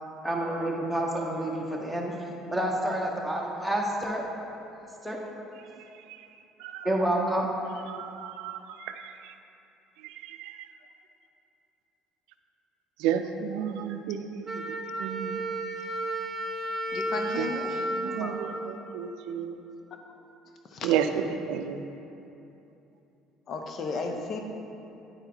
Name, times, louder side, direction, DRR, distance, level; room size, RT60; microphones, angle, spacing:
voice 1, 0.2-2.1 2.5-4.2 5.0-5.2 6.8-7.5 18.2-18.5, right 1 dB, ahead, -2 dB, 1.1 m, -29 dB
voice 2, 7.9-9.1 10.3-10.5 13.0-14.6 15.0-15.4 17.4-17.5 18.0-19.6 20.8-21.0 21.5-21.8, right 9 dB, 80° right, 8 dB, 0.4 m, -32 dB
Wind instrument woodwind instrument, 14.4-19.2, right 1 dB, 25° right, 1.1 m, -33 dB
voice 3, 16.9-17.9 20.7-20.9 23.5-24.4, left 3 dB, 50° left, 4 dB, 0.7 m, -34 dB
9.4 x 4.4 x 3.9 m, 2.8 s
cardioid pair, 100°, 0 cm